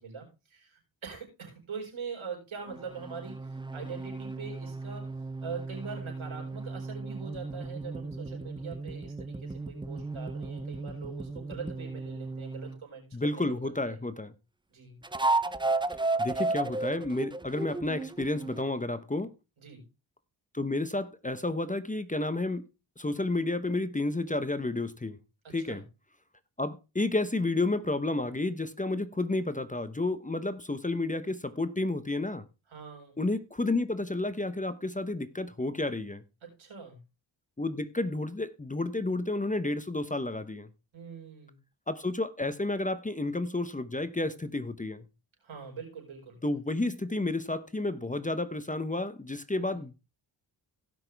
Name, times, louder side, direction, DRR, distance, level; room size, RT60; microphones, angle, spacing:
voice 1, 0.0-5.0 5.4-14.0 14.7-15.0 19.6-19.8 25.4-25.8 32.7-33.2 36.4-37.0 40.9-41.6 45.4-46.4 49.6-49.8, right 5 dB, 85° right, 5.0 m, -43 dB
sound 1, 2.7-12.8 15.0-18.7, right 3 dB, 10° right, 0.6 m, -34 dB
voice 2, 13.1-14.3 16.2-19.3 20.5-22.6 23.0-25.2 25.5-25.8 26.6-32.5 33.2-36.2 37.6-40.7 41.9-45.1 46.4-50.0, left 2 dB, 15° left, 0.9 m, -31 dB
17.0 x 6.0 x 3.4 m
cardioid pair, 70°, 47 cm